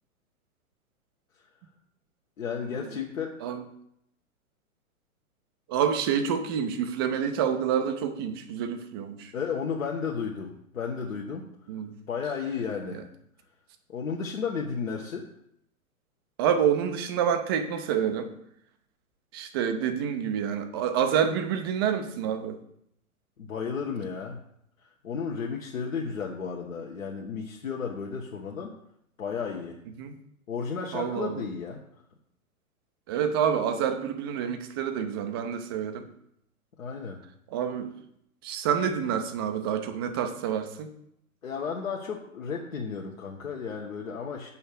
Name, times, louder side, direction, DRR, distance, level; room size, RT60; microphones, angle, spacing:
voice 1, 2.4-3.4 9.3-11.5 12.1-13.0 13.9-15.3 23.4-24.4 24.8-28.7 29.2-29.8 30.5-31.8 36.8-37.2 41.4-44.5, left 6 dB, 60° left, -1 dB, 1.2 m, -33 dB
voice 2, 5.7-9.3 11.7-12.0 16.4-18.3 19.3-22.6 30.0-30.2 30.9-31.4 33.1-36.1 37.5-37.9 38.4-40.9, right 8 dB, 15° right, 8 dB, 0.5 m, -28 dB
7.2 x 5.7 x 6.6 m, 0.73 s
figure-of-eight pair, 110°, 44 cm